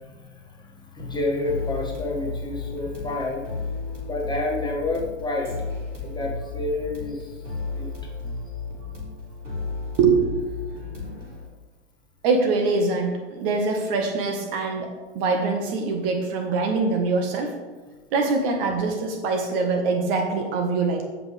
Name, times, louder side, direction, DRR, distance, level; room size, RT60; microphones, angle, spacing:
voice 1, 0.0-3.4 4.0-5.5 6.0-7.5 7.7-7.9, left 2 dB, 10° left, -2 dB, 1.9 m, -29 dB
sound 1, 1.0-11.5, left 3 dB, 90° right, 3.3 m, -34 dB
voice 2, 12.2-17.6 18.1-21.1, right 4 dB, 50° right, 4 dB, 1.5 m, -23 dB
15.5 x 5.5 x 3.4 m, 1.3 s
hypercardioid pair, 100°, 36 cm